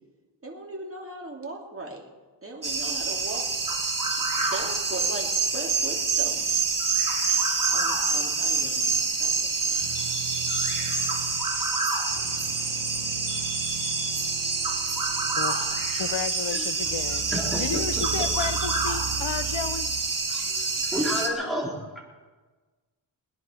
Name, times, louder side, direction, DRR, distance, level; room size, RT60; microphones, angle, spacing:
voice 1, 0.4-2.0 2.4-3.4 4.5-6.5 7.7-9.8, right 2 dB, 30° right, 0 dB, 2.8 m, -38 dB
sound 1, 2.6-21.3, right 4 dB, 45° right, 2.2 m, -27 dB
sound 2, 9.8-11.6 12.1-16.2 16.8-20.0, right 8 dB, 60° right, 1.4 m, -38 dB
voice 2, 16.0-17.2 17.6-19.9, left 8 dB, 75° left, 12 dB, 0.9 m, -32 dB
voice 3, 17.3-17.6 20.3-22.0, equal, ahead, -3 dB, 4.1 m, -30 dB
21.0 x 10.5 x 5.7 m, 1.3 s
wide cardioid pair, 90°, 45 cm